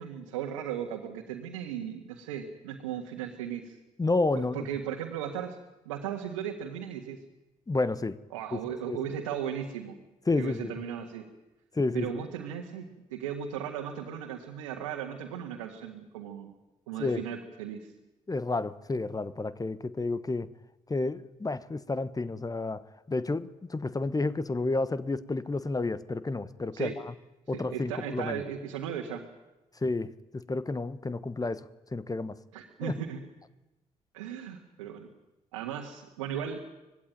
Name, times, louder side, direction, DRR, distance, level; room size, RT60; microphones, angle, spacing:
voice 1, 0.0-3.8 4.4-5.6 5.9-7.2 8.3-10.0 10.4-11.3 11.9-16.5 16.9-17.9 26.7-27.0 27.5-29.3 32.5-33.2 34.1-35.1 35.5-36.6, right 9 dB, 80° right, 1 dB, 1.8 m, -36 dB
voice 2, 4.0-4.7 7.7-8.2 8.9-9.0 10.3-10.7 11.7-12.2 17.0-17.2 18.3-20.5 20.9-26.9 27.5-28.4 29.8-32.4 32.8-32.9, left 3 dB, 20° left, 16 dB, 1.2 m, -30 dB
25.5 x 20.0 x 9.2 m, 1.0 s
figure-of-eight pair, 45°, 16 cm